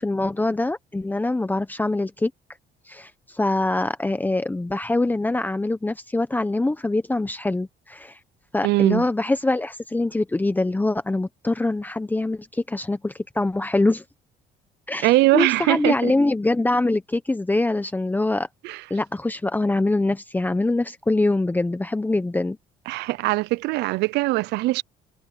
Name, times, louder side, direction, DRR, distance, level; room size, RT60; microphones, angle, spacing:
voice 1, 0.0-2.3 2.9-8.2 8.5-14.0 14.9-18.5 18.9-22.6, left 2 dB, 10° left, 1.0 m, -24 dB
voice 2, 8.6-9.0 15.0-16.1 18.6-18.8 22.9-24.8, right 20 dB, 80° right, 0.5 m, -21 dB
cardioid pair, 110°, 17 cm